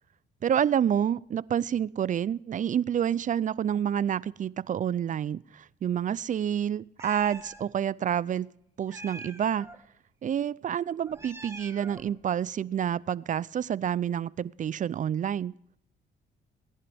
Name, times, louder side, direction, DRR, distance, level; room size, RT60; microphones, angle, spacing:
voice 1, 0.4-8.5 8.8-9.7 10.2-15.5, right 9 dB, 40° right, 22 dB, 0.4 m, -28 dB
Meow, 7.0-7.6 8.9-9.8 11.0-12.1, right 2 dB, 15° right, 1.8 m, -44 dB
18.5 x 11.0 x 3.5 m, 0.73 s
cardioid pair, 90°, 20 cm